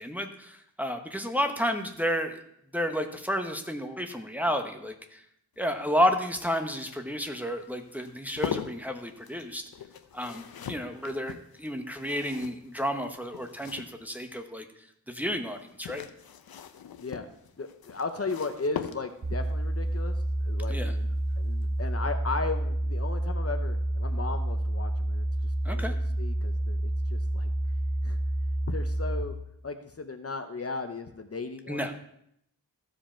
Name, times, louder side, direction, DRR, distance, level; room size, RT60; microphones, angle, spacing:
voice 1, 0.0-2.4 2.7-5.2 5.6-9.6 10.1-14.6 15.1-16.1 20.7-20.9 25.6-25.9 31.7-32.0, equal, 5° right, 4 dB, 1.0 m, -31 dB
sound 1, 5.6-14.4 15.5-19.4 21.1-21.4 21.6-21.7, left 8 dB, 85° left, 0.7 m, -41 dB
voice 2, 17.6-20.2 20.4-27.5 28.0-28.2 28.7-29.4 29.6-31.9, left 3 dB, 40° left, 7 dB, 0.8 m, -36 dB
sound 2, 19.2-29.2, right 1 dB, 60° right, 1.3 m, -29 dB
15.0 x 5.0 x 4.4 m, 0.73 s
wide cardioid pair, 85°, 35 cm